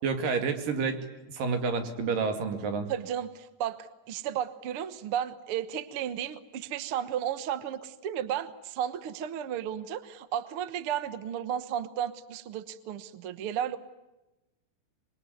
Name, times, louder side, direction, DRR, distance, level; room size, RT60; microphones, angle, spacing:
voice 1, 0.0-1.1 1.3-2.9, right 5 dB, 80° right, 7 dB, 4.0 m, -29 dB
voice 2, 2.9-13.8, right 10 dB, 55° right, 13 dB, 1.6 m, -33 dB
26.5 x 22.5 x 9.4 m, 1.0 s
omnidirectional pair, 3.8 m